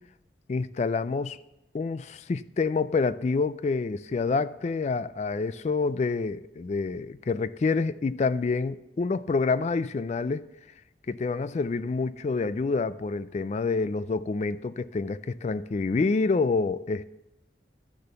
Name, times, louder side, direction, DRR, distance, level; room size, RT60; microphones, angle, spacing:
voice 1, 0.5-1.4 1.7-10.5 11.1-17.0, left 4 dB, 40° left, 0.3 m, -27 dB
12.0 x 6.7 x 6.9 m
head